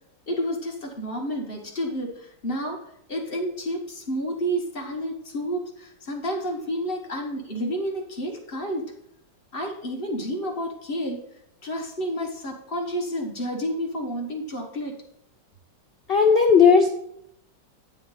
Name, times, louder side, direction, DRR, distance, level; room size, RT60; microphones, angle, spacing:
voice 1, 0.3-8.8 9.5-15.0, equal, 35° left, 1 dB, 1.3 m, -30 dB
voice 2, 16.1-16.9, left 6 dB, 80° left, 3 dB, 0.5 m, -15 dB
9.8 x 3.7 x 5.5 m, 0.75 s
omnidirectional pair, 1.9 m